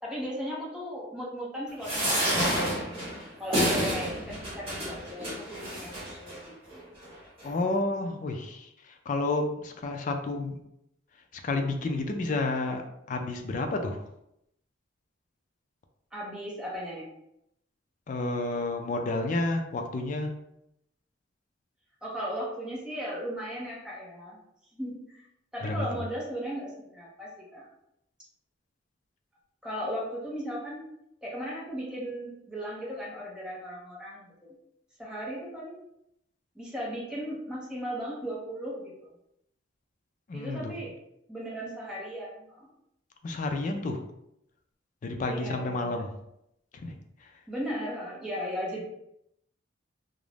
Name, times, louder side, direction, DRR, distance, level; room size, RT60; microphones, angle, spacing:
voice 1, 0.0-2.9 3.4-6.9 16.1-17.1 22.0-24.4 24.7-25.2 25.5-27.7 29.6-30.9 31.2-34.5 35.0-35.8 36.5-39.1 40.3-41.0 41.3-42.7 45.3-46.0 47.5-48.8, equal, 5° right, -5 dB, 0.6 m, -37 dB
sound 1, 1.8-6.4 7.0-7.1 7.4-7.5, equal, 25° right, 0.9 m, -29 dB
voice 2, 7.4-10.6 11.3-12.8 13.1-14.0 18.1-20.3 25.6-26.0 40.3-40.7 43.2-44.0 45.0-46.1 46.8-47.0 47.2-47.3, left 2 dB, 40° left, 5 dB, 0.3 m, -30 dB
2.4 x 2.0 x 3.2 m, 0.80 s
head